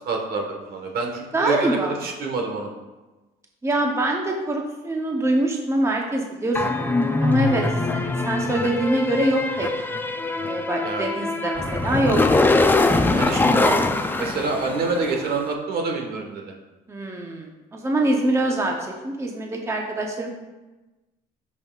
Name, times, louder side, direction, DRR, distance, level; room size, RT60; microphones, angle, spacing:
voice 1, 0.0-2.7 10.8-11.1 13.1-13.8 14.2-16.5, right 3 dB, 65° right, 2 dB, 1.4 m, -27 dB
voice 2, 1.3-2.0 3.6-7.6 7.9-9.7 10.4-12.2 16.9-20.3, right 1 dB, 15° right, 1 dB, 0.9 m, -24 dB
sound 1, 6.5-15.2, left 2 dB, 10° left, 0.5 m, -22 dB
12.0 x 5.5 x 2.4 m, 1.1 s
cardioid pair, 110°, 17 cm